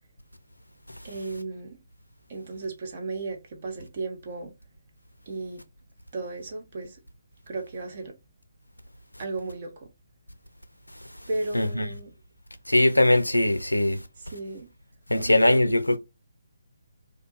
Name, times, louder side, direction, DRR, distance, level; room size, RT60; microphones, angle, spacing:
voice 1, 1.0-1.8 2.3-4.5 5.3-5.6 6.1-7.0 7.5-8.1 9.2-9.9 11.3-12.1 14.3-14.7 15.2-15.7, right 2 dB, 40° right, 0.7 m, -34 dB
voice 2, 11.5-11.9 12.7-14.0 15.1-16.0, left 1 dB, 85° left, 0.4 m, -21 dB
2.4 x 2.1 x 3.0 m
figure-of-eight pair, 140°, 0 cm